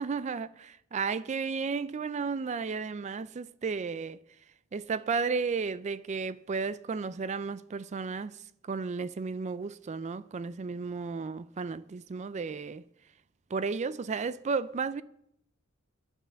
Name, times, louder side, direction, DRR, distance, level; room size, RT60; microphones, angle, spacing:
voice 1, 0.0-4.2 4.7-12.8 13.5-15.0, right 5 dB, 35° right, 0.4 m, -33 dB
11.0 x 8.9 x 7.5 m
head